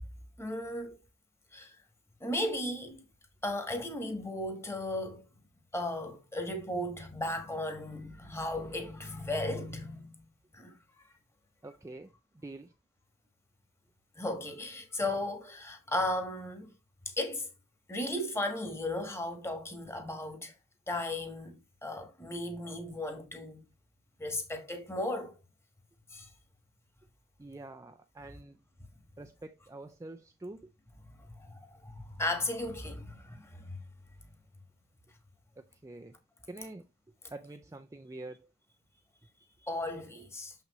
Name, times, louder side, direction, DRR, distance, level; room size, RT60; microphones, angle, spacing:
voice 1, 0.4-1.0 1.5-1.7 2.2-3.0 3.4-5.2 5.7-10.2 10.5-10.7 14.2-16.7 17.0-17.5 17.9-20.5 20.9-21.6 21.8-23.6 24.2-25.3 26.1-26.3 31.4-33.8 39.6-40.5, left 1 dB, 10° left, 1.3 m, -35 dB
voice 2, 11.6-12.1 12.4-12.7 27.4-28.6 29.2-30.7 35.6-36.2 36.5-36.8 37.3-38.5, right 2 dB, 15° right, 0.3 m, -46 dB
6.7 x 5.9 x 3.0 m
head